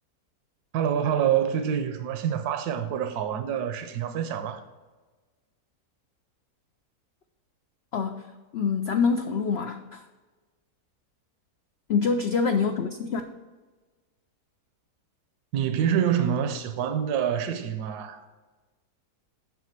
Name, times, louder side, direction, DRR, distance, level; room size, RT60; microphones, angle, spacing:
voice 1, 0.7-4.6 15.5-18.2, right 9 dB, 75° right, 1.2 m, -26 dB
voice 2, 7.9-8.3 8.5-10.1 11.9-13.2, left 5 dB, 70° left, 0.6 m, -25 dB
7.4 x 5.9 x 5.9 m
omnidirectional pair, 1.7 m